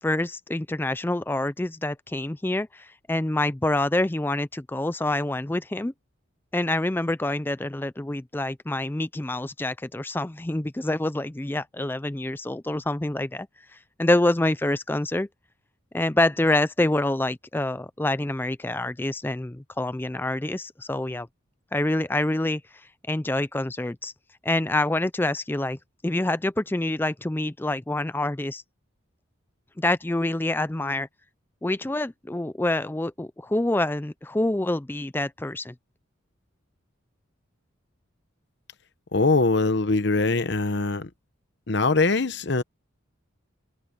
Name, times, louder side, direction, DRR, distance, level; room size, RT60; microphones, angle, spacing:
voice 1, 0.0-5.9 6.5-13.5 14.0-15.3 15.9-21.3 21.7-22.6 23.1-24.1 24.4-25.8 26.0-28.6 29.8-31.1 31.6-35.7, left 1 dB, 10° left, 0.4 m, -26 dB
voice 2, 39.1-41.1 41.7-42.6, left 3 dB, 55° left, 0.9 m, -22 dB
open air
head